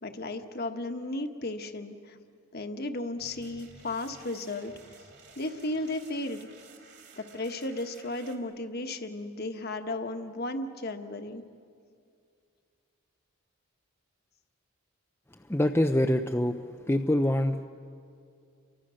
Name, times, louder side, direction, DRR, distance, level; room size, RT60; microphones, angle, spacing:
voice 1, 0.0-2.2 2.5-4.7 5.4-6.5 7.1-11.4, left 2 dB, 45° left, 6 dB, 1.4 m, -34 dB
sound 1, 3.2-8.4, right 4 dB, 50° right, 2.9 m, -54 dB
voice 2, 15.5-16.6 16.9-17.6, left 1 dB, 10° left, 5 dB, 0.5 m, -25 dB
30.0 x 24.5 x 6.4 m, 2.3 s
head